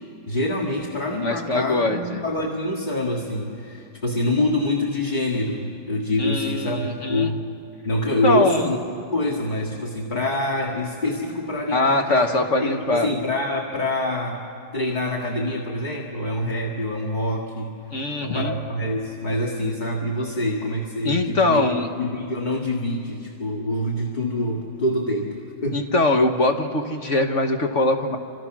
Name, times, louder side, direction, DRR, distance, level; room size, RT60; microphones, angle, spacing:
voice 1, 0.3-7.5 7.8-8.8 9.1-14.4 14.7-17.8 18.2-21.6 22.0-25.4 25.6-25.9, left 1 dB, 25° left, -1 dB, 2.1 m, -26 dB
voice 2, 1.2-2.2 6.2-7.3 8.2-8.7 11.7-13.1 17.9-18.5 21.0-21.9 25.7-28.2, left 2 dB, 50° left, 4 dB, 1.6 m, -22 dB
30.0 x 27.0 x 6.2 m, 2.7 s
omnidirectional pair, 1.8 m